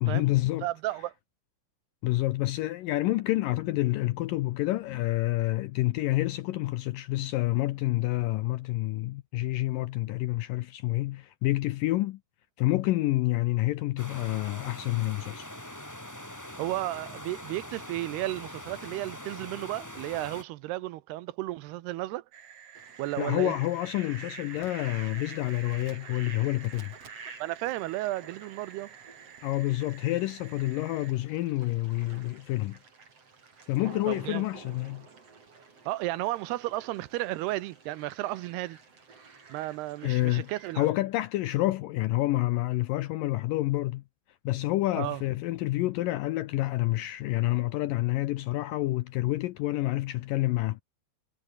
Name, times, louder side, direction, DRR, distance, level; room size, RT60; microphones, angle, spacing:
voice 1, 0.0-0.7 2.0-12.2 12.6-15.5 23.2-26.9 29.4-32.8 33.7-35.1 40.0-44.0 44.5-50.8, left 17 dB, 80° left, 2.0 m, -28 dB
voice 2, 0.6-1.1 16.6-22.2 23.0-23.6 27.4-28.9 34.1-34.5 35.9-38.8 39.5-40.9 45.0-45.2, right 17 dB, 85° right, 2.8 m, -33 dB
sound 1, 14.0-20.4, left 1 dB, 5° left, 2.9 m, -43 dB
sound 2, 22.3-31.1, right 8 dB, 60° right, 4.0 m, -51 dB
Fowl, 22.7-40.9, right 4 dB, 40° right, 5.1 m, -49 dB
omnidirectional pair, 4.7 m